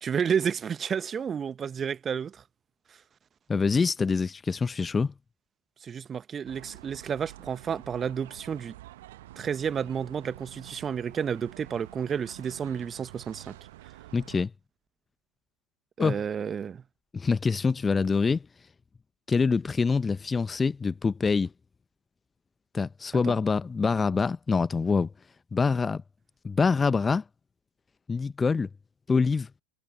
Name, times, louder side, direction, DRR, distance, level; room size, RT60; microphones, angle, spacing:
voice 1, 0.0-2.4 5.8-8.7 9.4-13.5 16.0-16.8 23.2-23.3, right 7 dB, 20° right, 1.3 m, -31 dB
voice 2, 3.5-5.1 14.1-14.5 16.0-16.2 17.1-18.4 19.3-21.5 22.7-25.1 25.5-26.0 26.4-27.2 28.1-28.7 29.1-29.5, left 4 dB, 15° left, 1.1 m, -25 dB
sound 1, 6.5-14.5, right 16 dB, 55° right, 1.3 m, -48 dB
figure-of-eight pair, 90°, 0 cm